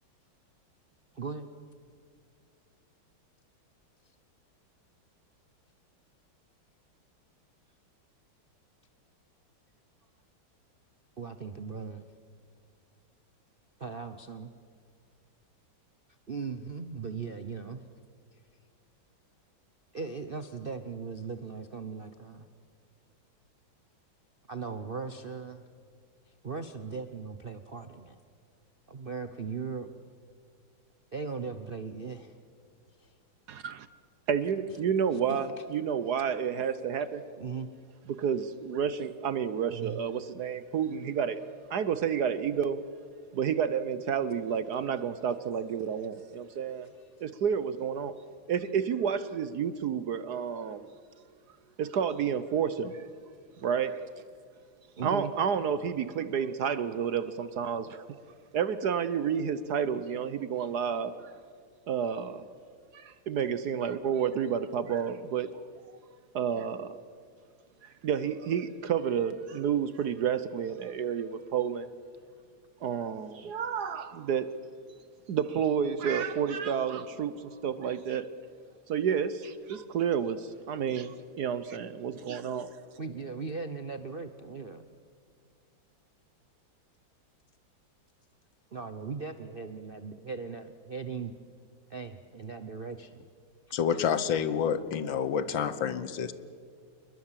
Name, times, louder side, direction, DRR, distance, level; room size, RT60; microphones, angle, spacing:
voice 1, 1.2-1.5 11.2-12.1 13.8-14.5 16.3-17.8 19.9-22.4 24.5-25.6 26.4-28.2 28.9-29.9 31.1-32.3 33.0-33.1 35.3-35.4 37.4-37.7 39.7-40.0 55.0-55.3 83.0-84.8 88.7-91.3 91.9-93.3, right 5 dB, 45° right, 8 dB, 0.7 m, -38 dB
voice 2, 33.5-33.9 34.3-37.2 38.1-41.4 41.7-42.8 43.3-46.9 47.2-48.2 48.5-50.9 51.8-53.0 53.6-54.0 55.0-58.0 58.5-61.3 61.9-62.5 62.9-65.6 66.3-67.0 67.8-71.9 72.8-74.5 75.3-78.3 78.9-82.8, right 7 dB, 60° right, 13 dB, 1.2 m, -30 dB
voice 3, 93.7-96.3, left 7 dB, 70° left, 13 dB, 1.8 m, -28 dB
28.5 x 21.0 x 7.5 m, 2.1 s
omnidirectional pair, 2.2 m